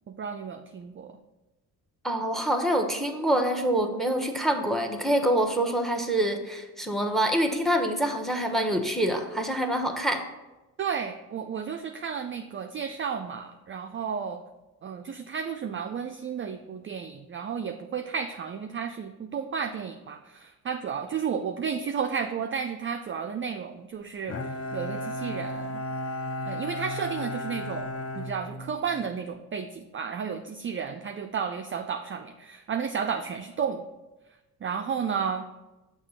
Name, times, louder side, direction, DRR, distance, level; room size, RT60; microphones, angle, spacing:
voice 1, 0.1-1.2 10.8-14.4 14.8-25.8 26.4-27.9 28.1-33.8 34.6-35.5, right 6 dB, 30° right, 6 dB, 0.4 m, -32 dB
voice 2, 2.0-10.2, right 1 dB, ahead, 4 dB, 0.9 m, -26 dB
Bowed string instrument, 24.3-29.1, left 1 dB, 35° left, 0.5 m, -34 dB
6.5 x 2.9 x 5.5 m, 1.1 s
supercardioid pair, 55°, 42 cm